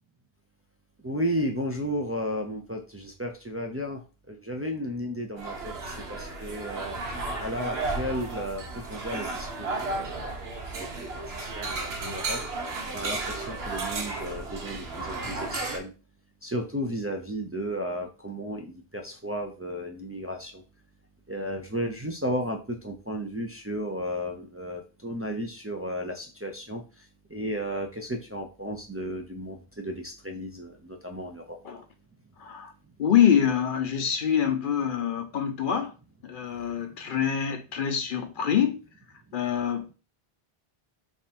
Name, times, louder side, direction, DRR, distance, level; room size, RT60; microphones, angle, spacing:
voice 1, 1.0-4.0 4.3-6.9 7.4-10.3 11.0-11.1 11.4-12.4 12.9-15.9 16.4-20.6 21.3-26.8 27.3-31.6, equal, 25° right, 0.3 m, -33 dB
sound 1, 5.4-15.8, right 3 dB, 85° right, 1.1 m, -33 dB
voice 2, 32.4-32.7 33.0-35.9 36.2-38.8 39.3-39.9, left 8 dB, 60° left, 0.7 m, -25 dB
3.6 x 2.4 x 4.1 m
omnidirectional pair, 1.0 m